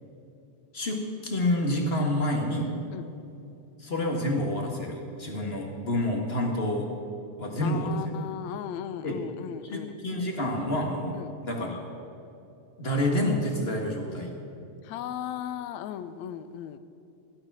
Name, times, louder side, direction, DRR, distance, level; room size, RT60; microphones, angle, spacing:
voice 1, 0.7-2.7 3.8-6.9 7.4-8.0 9.0-9.2 9.6-11.1 11.4-11.8 12.8-14.3, left 1 dB, 30° left, 1 dB, 1.3 m, -28 dB
voice 2, 7.6-10.0 11.1-11.3 14.8-16.8, left 9 dB, 80° left, 12 dB, 1.9 m, -36 dB
15.5 x 12.0 x 6.2 m, 2.8 s
omnidirectional pair, 3.3 m